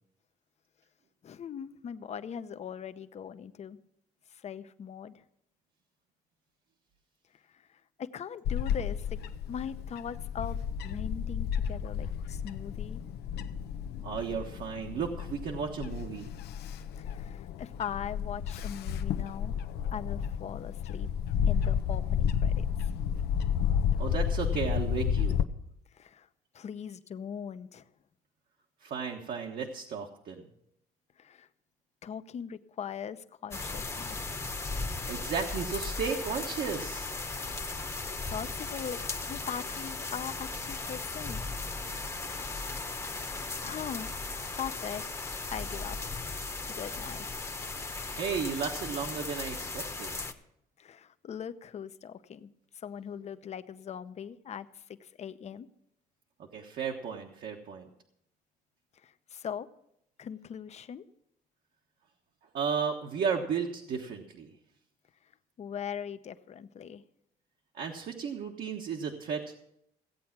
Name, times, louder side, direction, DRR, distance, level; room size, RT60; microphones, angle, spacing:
voice 1, 1.2-3.8 4.3-5.2 7.5-9.2 9.5-13.0 17.0-19.6 19.9-21.1 21.4-22.9 25.9-26.3 26.5-27.8 31.2-31.5 32.0-34.2 37.5-39.0 39.3-41.5 43.6-44.1 44.6-45.1 45.5-46.0 46.7-47.4 50.8-55.7 59.0-59.7 60.2-61.0 65.6-67.0, left 8 dB, 40° left, 12 dB, 0.7 m, -40 dB
Bird / Wind, 8.4-25.4, left 8 dB, 75° left, 0.7 m, -31 dB
voice 2, 14.0-16.3 24.0-25.4 28.8-30.4 35.1-37.1 48.1-50.1 56.4-57.9 62.5-64.5 67.7-69.6, right 6 dB, 60° right, 1 dB, 1.3 m, -34 dB
sound 1, 33.5-50.3, left 3 dB, 15° left, 1.1 m, -37 dB
16.0 x 8.4 x 6.0 m, 0.77 s
cardioid pair, 110°, 17 cm